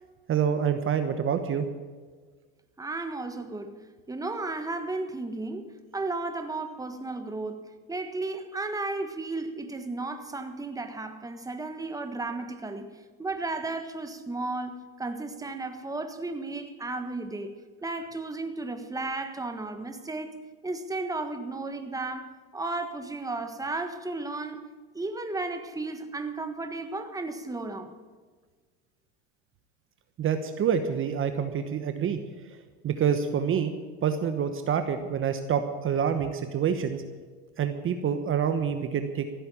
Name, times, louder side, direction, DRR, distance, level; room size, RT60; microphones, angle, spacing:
voice 1, 0.3-1.7 30.2-32.2 32.4-33.7 34.0-37.0 37.6-39.3, right 7 dB, 35° right, 1.1 m, -27 dB
voice 2, 2.8-3.8 4.1-5.7 5.9-12.9 13.2-17.5 17.8-20.3 20.6-24.6 24.9-28.0, right 2 dB, 10° right, 1.5 m, -34 dB
15.0 x 8.0 x 8.7 m
hypercardioid pair, 90°, 34 cm